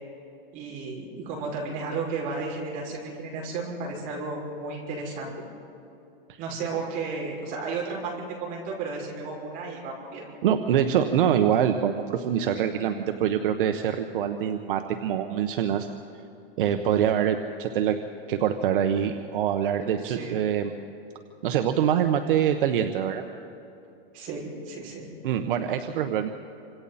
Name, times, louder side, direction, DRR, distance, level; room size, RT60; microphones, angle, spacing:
voice 1, 0.5-5.3 6.4-10.2 20.0-20.4 24.1-25.1, right 4 dB, 30° right, -2 dB, 6.1 m, -33 dB
voice 2, 10.4-15.9 16.6-18.0 18.3-20.7 21.4-23.2 25.2-26.3, right 9 dB, 65° right, 6 dB, 1.2 m, -24 dB
28.0 x 26.0 x 4.3 m, 2.8 s
supercardioid pair, 165°, 29 cm